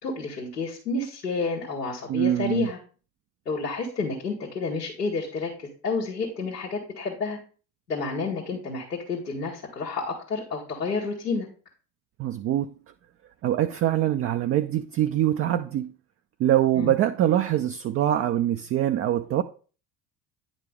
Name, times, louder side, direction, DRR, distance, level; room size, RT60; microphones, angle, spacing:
voice 1, 0.0-2.8 3.4-7.4 7.9-11.5 16.7-16.9, left 4 dB, 90° left, 1.4 m, -30 dB
voice 2, 2.1-2.7 12.2-12.7 13.4-15.9 16.4-19.4, right 12 dB, 30° right, 0.4 m, -23 dB
9.6 x 5.0 x 3.5 m
hypercardioid pair, 60°, 47 cm